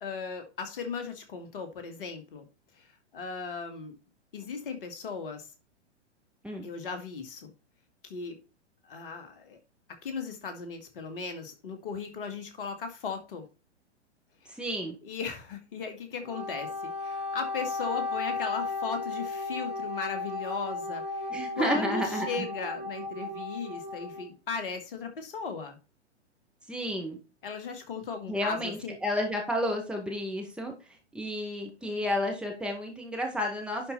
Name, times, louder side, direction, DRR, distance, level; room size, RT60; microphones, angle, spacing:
voice 1, 0.0-2.5 2.8-3.9 4.3-5.5 6.6-7.5 8.0-8.4 8.8-9.6 10.0-13.4 14.4-14.5 15.0-25.8 27.4-29.0, left 5 dB, 50° left, 6 dB, 2.2 m, -37 dB
voice 2, 14.6-15.0 21.3-22.5 26.7-27.2 28.3-30.7 31.1-33.9, equal, 5° right, 0 dB, 2.1 m, -31 dB
Wind instrument woodwind instrument, 16.2-24.2, left 3 dB, 20° right, 2.0 m, -35 dB
11.0 x 4.7 x 4.1 m, 0.31 s
figure-of-eight pair, 110°, 34 cm